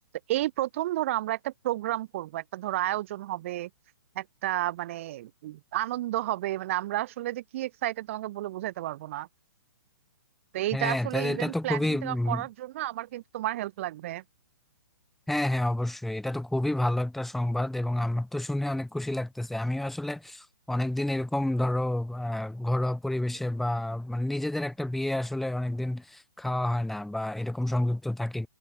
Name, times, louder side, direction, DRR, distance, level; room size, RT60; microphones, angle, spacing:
voice 1, 0.3-3.7 4.1-9.3 10.5-14.2, right 15 dB, 35° right, 0.7 m, -31 dB
voice 2, 10.7-12.4 15.3-28.5, left 1 dB, ahead, 0.8 m, -29 dB
figure-of-eight pair, 120°, 11 cm